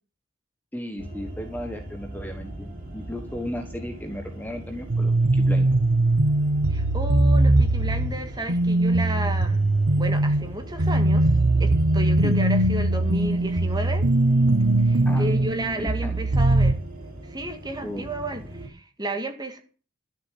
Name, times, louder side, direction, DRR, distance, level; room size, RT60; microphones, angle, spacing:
voice 1, 0.7-5.8 12.2-12.4 15.0-15.3 15.8-16.2 17.8-18.0, equal, 10° left, 5 dB, 1.2 m, -35 dB
sound 1, 1.0-18.7, right 1 dB, 40° right, 4.2 m, -40 dB
sound 2, 4.9-16.7, right 2 dB, 75° right, 1.2 m, -21 dB
voice 2, 6.7-9.6 10.0-11.3 11.6-14.0 14.8-16.8 17.2-19.6, right 1 dB, 20° right, 6 dB, 2.0 m, -32 dB
12.5 x 7.2 x 9.3 m, 0.38 s
head